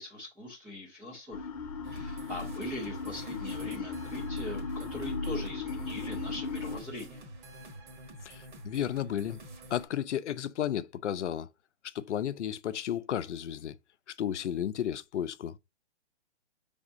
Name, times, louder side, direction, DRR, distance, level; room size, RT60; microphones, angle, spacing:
voice 1, 0.0-1.5 1.9-7.2, left 1 dB, 5° right, 0.4 m, -41 dB
sound 1, 1.3-6.8, left 4 dB, 35° left, 0.8 m, -37 dB
sound 2, 1.8-9.9, right 1 dB, 45° right, 1.3 m, -48 dB
voice 2, 8.2-9.4 9.7-11.5 11.8-13.8 14.1-15.6, left 10 dB, 85° left, 0.5 m, -33 dB
5.0 x 3.5 x 2.5 m
hypercardioid pair, 155°, 34 cm